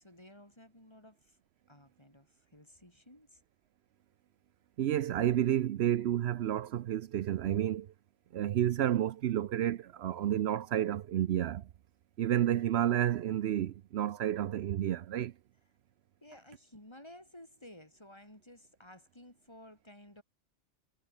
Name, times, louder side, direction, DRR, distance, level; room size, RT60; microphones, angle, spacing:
voice 1, 0.0-1.4 1.7-3.4 16.2-20.2, left 1 dB, 25° left, 4.4 m, -55 dB
voice 2, 4.8-7.9 8.3-11.7 12.2-15.3, right 11 dB, 70° right, 0.9 m, -30 dB
omnidirectional pair, 1.1 m